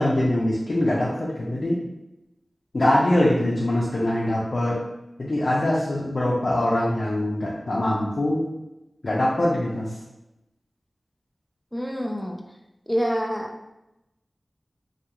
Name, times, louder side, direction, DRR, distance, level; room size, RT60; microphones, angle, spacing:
voice 1, 0.0-1.8 2.7-4.8 5.2-8.5 9.0-9.9, left 1 dB, 70° left, -6 dB, 0.5 m, -23 dB
voice 2, 11.7-12.4 12.9-13.5, equal, ahead, 0 dB, 0.3 m, -26 dB
2.3 x 2.3 x 2.9 m, 0.93 s
wide cardioid pair, 60°, 0 cm